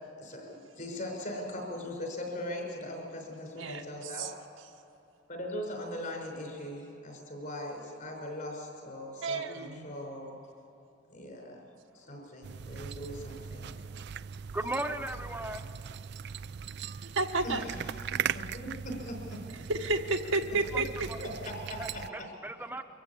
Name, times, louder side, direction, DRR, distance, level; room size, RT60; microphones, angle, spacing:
voice 1, 0.2-4.3 5.3-10.4 11.1-11.6 11.9-13.7 17.4-19.4 21.4-22.3, left 1 dB, 45° left, 1 dB, 5.7 m, -40 dB
voice 2, 3.6-4.3 9.2-9.9 17.0-17.6 19.5-21.3, right 3 dB, 90° right, 2 dB, 1.3 m, -32 dB
sound 1, 12.4-22.1, right 8 dB, 60° right, 0.4 m, -39 dB
voice 3, 14.5-15.7 21.1-21.2 21.8-22.8, right 1 dB, 10° right, 6 dB, 1.0 m, -36 dB
24.5 x 15.0 x 8.6 m, 2.8 s
head